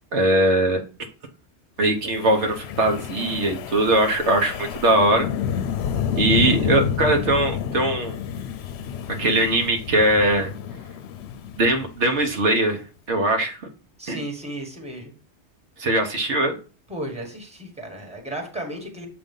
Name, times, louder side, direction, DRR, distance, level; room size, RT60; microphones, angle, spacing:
voice 1, 0.1-0.8 1.8-5.3 6.2-8.2 9.2-10.5 11.6-12.8 13.1-13.6 14.1-14.2 15.8-16.6, right 1 dB, 75° right, 4 dB, 1.2 m, -20 dB
Wind, 2.0-12.3, left 8 dB, 70° left, 0.8 m, -29 dB
voice 2, 14.0-15.1 16.9-19.1, right 1 dB, 5° right, 2 dB, 1.2 m, -34 dB
7.0 x 2.6 x 5.3 m, 0.36 s
omnidirectional pair, 1.2 m